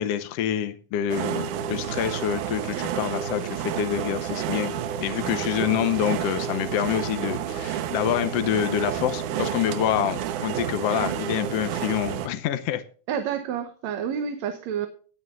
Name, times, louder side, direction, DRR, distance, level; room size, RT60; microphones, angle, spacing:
voice 1, 0.0-12.8, left 10 dB, 65° left, 9 dB, 1.8 m, -27 dB
sound 1, 1.1-12.3, right 9 dB, 85° right, 2.4 m, -30 dB
voice 2, 13.1-14.9, right 8 dB, 70° right, 7 dB, 2.2 m, -29 dB
18.5 x 9.9 x 2.5 m, 0.40 s
omnidirectional pair, 3.5 m